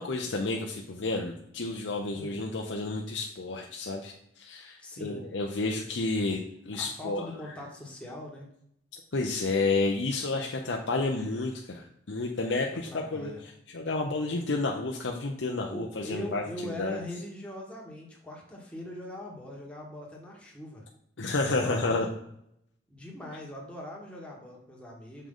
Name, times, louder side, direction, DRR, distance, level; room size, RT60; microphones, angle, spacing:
voice 1, 0.0-6.4 6.7-7.3 8.9-13.3 13.7-16.4 16.8-17.0 21.2-22.1, left 3 dB, 90° left, 1 dB, 0.7 m, -30 dB
voice 2, 4.8-5.2 6.7-8.5 12.9-13.4 15.7-20.8 21.2-22.1 22.9-25.3, left 1 dB, 5° left, -3 dB, 1.5 m, -41 dB
6.7 x 5.1 x 3.8 m, 0.75 s
head